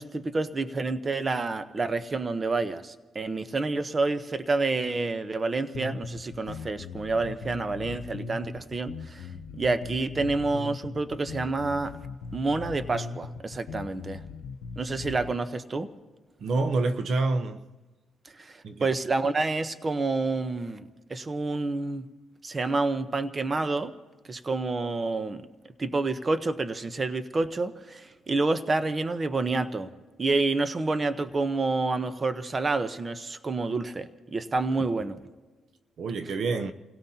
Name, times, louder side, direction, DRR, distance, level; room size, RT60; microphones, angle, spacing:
voice 1, 0.0-12.0 12.3-14.2 14.8-15.9 18.2-22.1 22.4-23.9 24.3-25.5 25.8-29.9 30.2-35.2, right 3 dB, 30° right, 0.9 m, -28 dB
sound 1, 5.7-15.3, left 5 dB, 90° left, 0.7 m, -40 dB
voice 2, 16.4-17.6 18.6-18.9 36.0-36.7, right 3 dB, 60° right, 0.9 m, -27 dB
29.5 x 17.0 x 2.9 m
cardioid pair, 90°, 0 cm